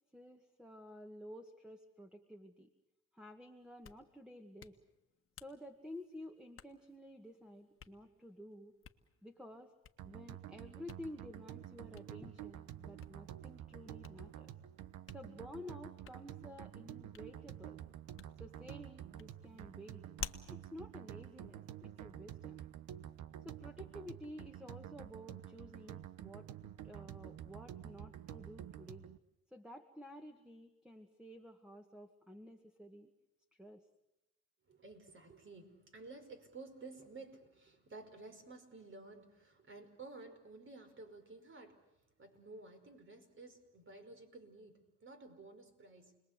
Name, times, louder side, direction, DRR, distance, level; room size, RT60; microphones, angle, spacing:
voice 1, 0.1-2.7 3.1-4.8 5.4-8.7 9.2-9.7 10.0-14.5 15.1-17.8 18.4-20.0 20.5-22.6 23.4-26.5 26.8-29.1 29.5-33.1 33.5-33.9, left 1 dB, 5° right, 5 dB, 2.0 m, -52 dB
Hands, 3.6-22.1, left 7 dB, 45° left, 1.6 m, -56 dB
sound 1, 10.0-29.2, right 11 dB, 85° right, 1.2 m, -49 dB
voice 2, 34.7-41.8 42.2-46.2, right 3 dB, 40° right, 6 dB, 5.4 m, -53 dB
29.5 x 21.0 x 8.4 m, 0.92 s
cardioid pair, 90°, 30 cm